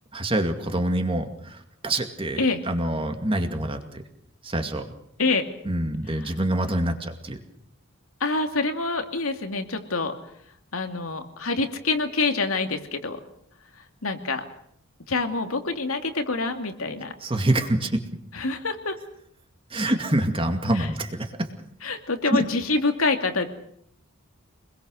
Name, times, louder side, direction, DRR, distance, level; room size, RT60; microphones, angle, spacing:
voice 1, 0.1-3.8 4.4-4.9 5.6-7.4 17.2-18.0 19.7-21.5 22.3-22.4, right 1 dB, 25° right, 6 dB, 2.2 m, -26 dB
voice 2, 8.2-10.1 10.7-13.2 14.0-14.4 15.1-17.1 18.3-19.0 20.8-20.9 21.8-23.5, left 3 dB, 80° left, 6 dB, 2.6 m, -26 dB
26.0 x 21.0 x 6.5 m, 0.69 s
head